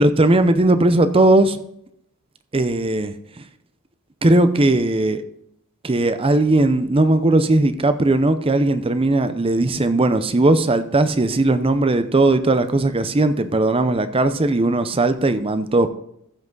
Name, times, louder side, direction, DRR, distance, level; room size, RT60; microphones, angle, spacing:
voice 1, 0.0-1.6 2.5-3.1 4.2-5.2 5.8-15.9, right 2 dB, 25° right, 11 dB, 0.7 m, -18 dB
14.0 x 5.9 x 4.0 m, 0.73 s
head